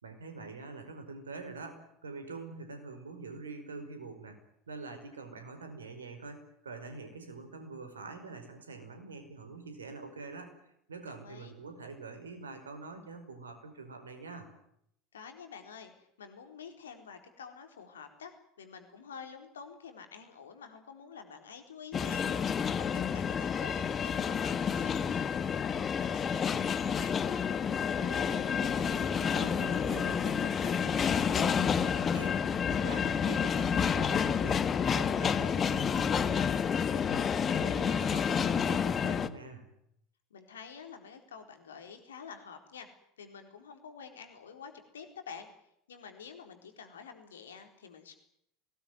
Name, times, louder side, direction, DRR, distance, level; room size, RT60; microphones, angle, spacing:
voice 1, 0.0-4.4 4.7-10.5 10.9-14.5 28.0-36.5 36.9-39.7, right 4 dB, 80° right, 8 dB, 5.2 m, -45 dB
voice 2, 11.1-11.5 15.1-22.4 22.8-27.2 40.3-42.9 43.2-45.5 45.9-48.2, left 6 dB, 75° left, 6 dB, 4.2 m, -48 dB
sound 1, 21.9-39.3, left 7 dB, 30° left, 1.4 m, -29 dB
21.5 x 19.5 x 9.4 m, 0.73 s
figure-of-eight pair, 75°, 0 cm